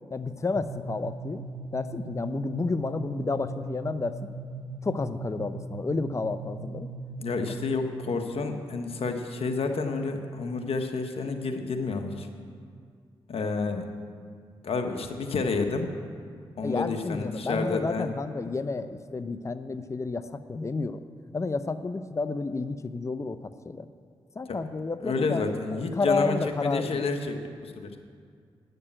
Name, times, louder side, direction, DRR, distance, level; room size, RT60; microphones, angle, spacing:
voice 1, 0.1-1.4 1.7-4.2 4.8-6.9 16.6-21.0 21.3-23.9 24.4-27.0, left 3 dB, 30° left, 11 dB, 0.6 m, -31 dB
sound 1, 0.6-8.1, right 3 dB, 35° right, 1.0 m, -39 dB
voice 2, 7.2-12.3 13.3-13.9 14.6-15.9 16.6-18.1 25.0-27.9, left 4 dB, 65° left, 5 dB, 1.2 m, -30 dB
9.8 x 6.7 x 8.8 m, 2.1 s
cardioid pair, 50°, 11 cm